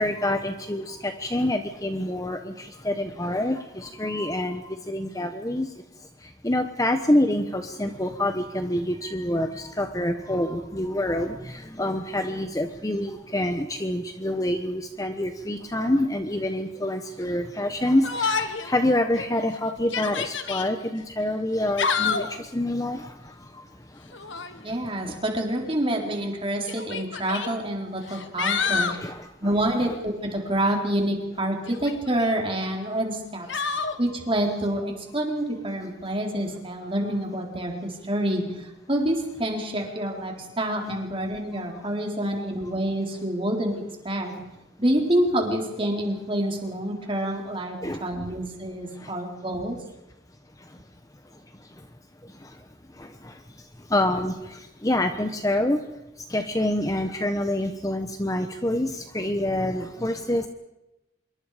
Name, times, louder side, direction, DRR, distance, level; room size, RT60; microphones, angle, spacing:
voice 1, 0.0-5.7 6.0-24.7 25.0-25.2 28.6-29.3 33.7-34.0 47.8-48.0 48.9-49.1 50.6-50.8 51.3-51.9 52.2-52.6 52.9-55.8 56.2-60.5, left 1 dB, 15° left, 7 dB, 1.1 m, -27 dB
Yell, 18.0-18.7 19.2-19.3 19.8-20.7 21.5-22.4 24.1-24.6 25.7-25.8 26.7-27.5 28.0-29.0 31.7-32.3 33.5-34.0, left 5 dB, 70° left, 1.8 m, -28 dB
voice 2, 24.6-29.0 29.4-33.6 34.0-44.3 44.8-49.8, right 1 dB, 25° right, 2 dB, 4.0 m, -27 dB
26.0 x 23.0 x 5.1 m, 0.95 s
head